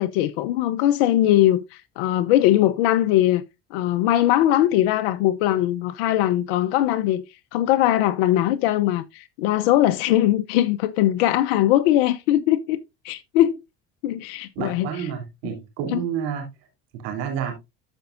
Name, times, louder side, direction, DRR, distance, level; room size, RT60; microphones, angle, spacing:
voice 1, 0.0-1.6 2.0-3.4 3.7-7.2 7.5-12.8 13.0-13.6 14.0-14.9 15.9-16.0, left 13 dB, 85° left, 0.8 m, -20 dB
voice 2, 14.5-16.4 16.9-17.6, right 8 dB, 90° right, 3.3 m, -29 dB
14.0 x 5.4 x 2.5 m
supercardioid pair, 90°, 30 cm